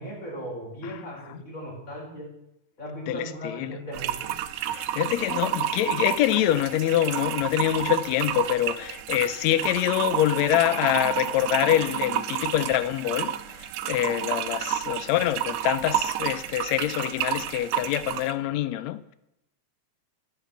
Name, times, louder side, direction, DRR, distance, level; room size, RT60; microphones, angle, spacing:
voice 1, 0.0-2.3 2.8-4.3, equal, 25° left, 4.7 m, -37 dB
voice 2, 3.1-3.8 4.7-19.1, left 13 dB, 80° left, 1.7 m, -25 dB
sound 1, 3.9-18.4, right 11 dB, 90° right, 2.1 m, -30 dB
16.0 x 5.9 x 6.9 m
omnidirectional pair, 3.4 m